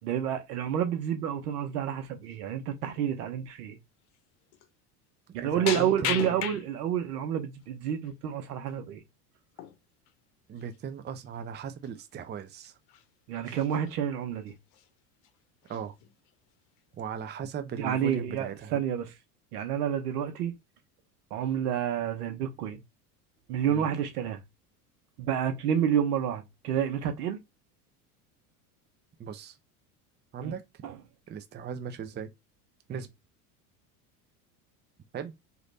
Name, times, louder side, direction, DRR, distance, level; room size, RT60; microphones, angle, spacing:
voice 1, 0.0-3.8 5.3-9.0 13.3-14.5 17.8-19.1 19.5-20.5 21.3-22.8 23.5-24.4 25.2-27.4 30.4-30.5 30.8-31.0 32.9-33.0, right 9 dB, 80° right, 1.1 m, -29 dB
sound 1, 1.5-1.8 2.2-2.4 3.0-3.1 4.1-4.2 4.5-4.7 5.7-7.0 7.4-8.1 9.5-9.8 10.1-10.2 10.6-10.8 11.5-11.6 11.8-12.0 12.5-13.0 13.3-13.9 14.5-14.9 15.2-15.3 15.6-16.3 16.8-17.2, left 10 dB, 55° left, 0.9 m, -37 dB
voice 2, 5.4-6.5 10.5-12.7 15.7-15.9 17.0-18.7 23.7-23.9 29.2-29.6 30.3-30.6 31.3-32.3 32.9-33.1 35.1-35.3, right 7 dB, 25° right, 0.6 m, -38 dB
3.1 x 2.8 x 4.0 m
hypercardioid pair, 90°, 45 cm